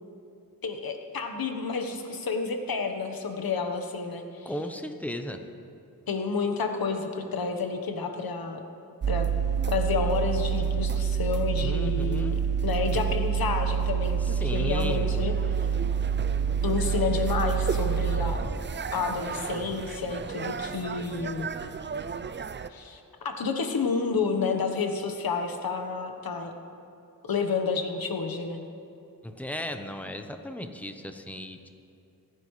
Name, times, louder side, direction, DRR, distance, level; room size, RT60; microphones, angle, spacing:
voice 1, 0.6-4.5 6.1-8.6 9.1-9.3 9.7-14.2 14.5-15.3 15.6-15.7 16.6-18.4 18.9-21.5 22.7-26.5 27.3-28.6, left 5 dB, 75° left, 5 dB, 1.3 m, -30 dB
voice 2, 4.4-5.4 11.6-12.4 14.2-15.3 29.2-31.7, left 1 dB, 5° left, 6 dB, 0.9 m, -35 dB
sound 1, 9.0-22.7, right 7 dB, 30° right, 0.4 m, -28 dB
27.0 x 9.6 x 3.3 m, 2.6 s
wide cardioid pair, 80°, 36 cm